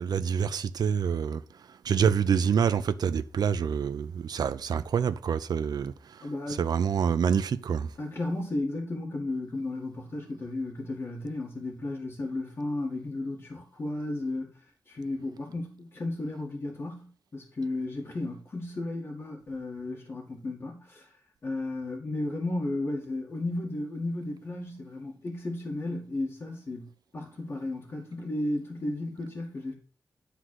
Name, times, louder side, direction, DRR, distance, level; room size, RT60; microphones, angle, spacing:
voice 1, 0.0-1.4 1.8-5.9 6.5-7.9, right 7 dB, 90° right, 0.7 m, -26 dB
voice 2, 6.2-6.6 8.0-21.1 21.4-29.7, left 2 dB, 40° left, 2.0 m, -34 dB
11.5 x 3.9 x 6.4 m
wide cardioid pair, 175°, 7 cm